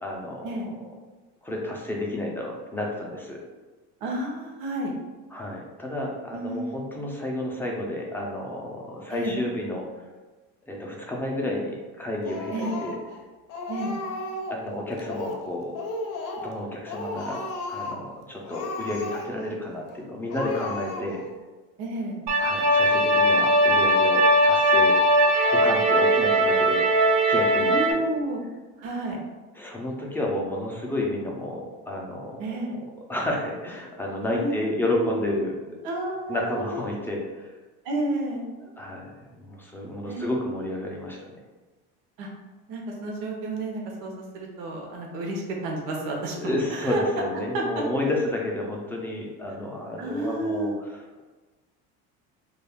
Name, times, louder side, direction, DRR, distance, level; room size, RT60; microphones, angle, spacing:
voice 1, 0.0-0.5 1.4-3.4 5.3-9.8 10.7-12.9 14.5-15.7 16.3-21.2 22.4-25.0 25.5-26.8 27.3-28.0 29.6-32.6 33.1-35.5 36.3-37.5 38.8-39.1 39.4-41.2 46.4-51.2, left 1 dB, 5° left, -2 dB, 0.3 m, -31 dB
voice 2, 4.0-4.9 6.3-6.7 9.1-9.4 12.5-12.7 13.7-13.9 21.8-22.2 27.6-28.4 28.8-29.2 32.4-32.8 34.3-35.3 35.8-36.8 37.8-38.4 40.1-40.3 42.2-42.3 42.7-47.2 47.5-47.8 50.0-50.7, right 1 dB, 85° right, 0 dB, 0.8 m, -31 dB
Speech, 12.2-13.2 13.5-14.6 15.0-15.5 15.7-16.6 16.9-18.1 18.4-19.5 19.9-20.0 20.3-21.3, left 2 dB, 65° left, 0.6 m, -34 dB
sound 1, 22.3-27.9, equal, 55° right, 0.5 m, -20 dB
2.3 x 2.2 x 3.4 m, 1.2 s
cardioid pair, 135°, 33 cm